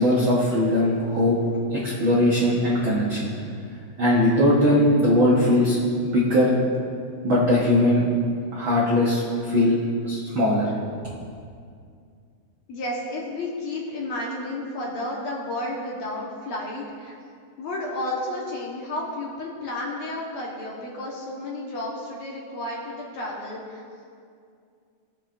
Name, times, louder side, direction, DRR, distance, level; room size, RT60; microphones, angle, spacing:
voice 1, 0.0-1.4 1.7-3.3 4.0-5.8 6.0-6.5 7.2-8.1 8.5-9.8 10.0-10.7, left 1 dB, 75° right, -5 dB, 1.1 m, -20 dB
voice 2, 12.7-17.1 17.6-23.8, left 1 dB, 60° left, -3 dB, 2.0 m, -32 dB
18.0 x 7.4 x 2.5 m, 2.3 s
omnidirectional pair, 4.0 m